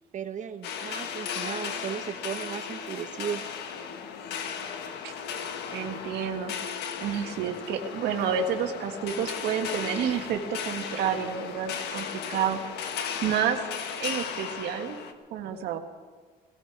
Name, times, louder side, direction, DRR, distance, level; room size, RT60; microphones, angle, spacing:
voice 1, 0.1-3.4, right 8 dB, 45° right, 8 dB, 1.1 m, -35 dB
sound 1, 0.6-15.1, left 7 dB, 80° left, 1.5 m, -36 dB
voice 2, 5.7-6.5 7.0-12.6 13.2-13.6 14.0-15.0 15.3-15.8, right 8 dB, 80° right, 5 dB, 1.7 m, -29 dB
18.5 x 16.5 x 4.7 m, 1.5 s
cardioid pair, 110°, 17 cm